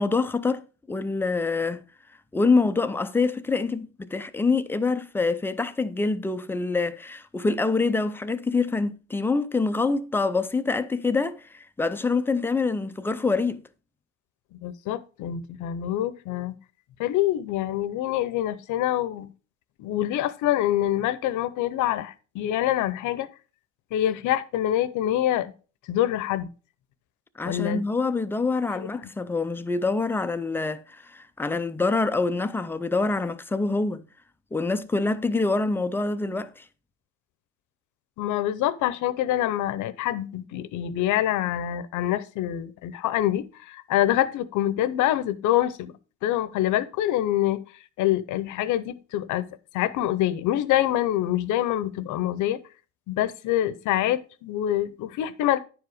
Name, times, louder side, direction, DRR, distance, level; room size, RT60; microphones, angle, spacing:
voice 1, 0.0-1.8 2.3-13.6 27.4-34.0 34.5-36.6, left 3 dB, 5° left, 0.3 m, -25 dB
voice 2, 14.6-16.6 17.0-19.3 19.8-23.3 23.9-25.5 25.9-26.5 27.4-27.8 28.8-28.9 38.2-45.9 46.2-47.6 48.0-49.5 49.7-52.6 53.1-55.6, left 13 dB, 60° left, 0.7 m, -25 dB
10.0 x 4.9 x 4.9 m
cardioid pair, 145°, 35 cm